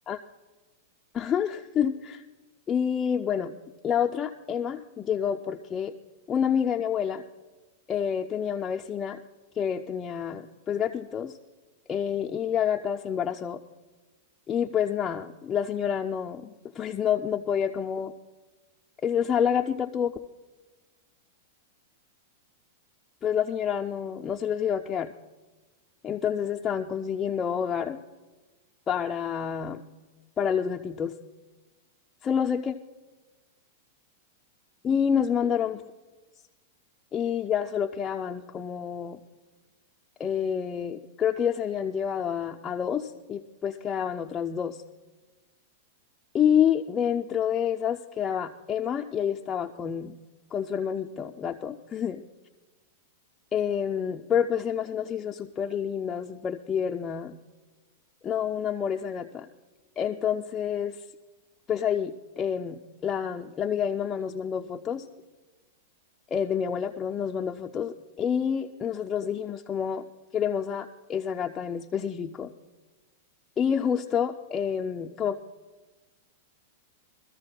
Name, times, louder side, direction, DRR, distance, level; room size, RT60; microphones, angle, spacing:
voice 1, 1.1-2.2 2.7-3.6 3.8-5.9 6.3-7.2 7.9-9.2 9.5-11.4 11.9-13.6 14.5-18.1 19.0-20.2 23.2-25.1 26.0-28.0 28.9-29.8 30.4-31.1 32.2-32.7 34.8-35.8 37.1-39.2 40.2-44.8 46.3-50.2 50.5-52.2 53.5-57.3 58.2-59.5 60.0-61.0 61.7-65.1 66.3-70.0 70.3-72.5 73.6-75.4, left 8 dB, 15° left, 2 dB, 0.3 m, -28 dB
23.0 x 13.5 x 2.3 m, 1.3 s
supercardioid pair, 160°, 0 cm